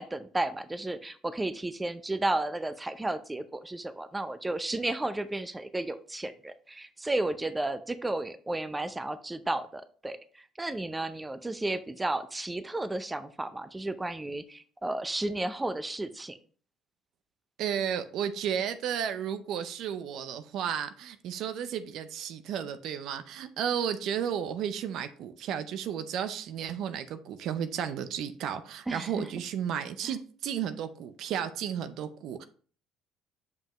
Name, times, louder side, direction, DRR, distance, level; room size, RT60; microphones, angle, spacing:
voice 1, 0.0-16.4 28.9-29.3 30.0-30.1, right 2 dB, 15° right, 0.6 m, -33 dB
voice 2, 17.6-32.4, right 8 dB, 65° right, 0.5 m, -33 dB
6.9 x 5.3 x 3.0 m
supercardioid pair, 90°, 0 cm